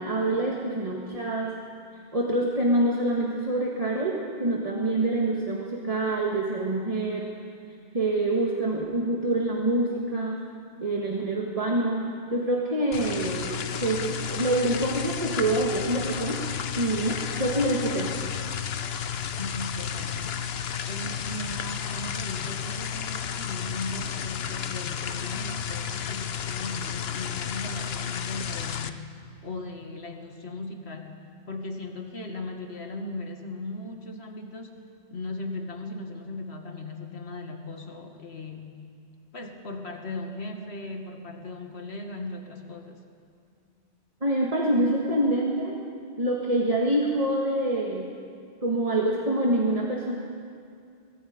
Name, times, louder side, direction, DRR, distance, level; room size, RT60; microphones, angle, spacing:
voice 1, 0.0-1.5 2.1-7.3 7.9-10.4 10.8-16.4 16.8-18.1 44.2-45.8 46.2-48.1 48.6-50.1, right 1 dB, 35° right, -2 dB, 1.9 m, -26 dB
sound 1, 12.9-28.9, left 8 dB, 75° left, 1.0 m, -32 dB
voice 2, 19.4-29.1 29.4-31.2 31.5-34.8 35.1-38.7 39.3-43.0, left 2 dB, 90° left, 3 dB, 2.2 m, -38 dB
24.0 x 23.0 x 5.2 m, 2.3 s
omnidirectional pair, 1.1 m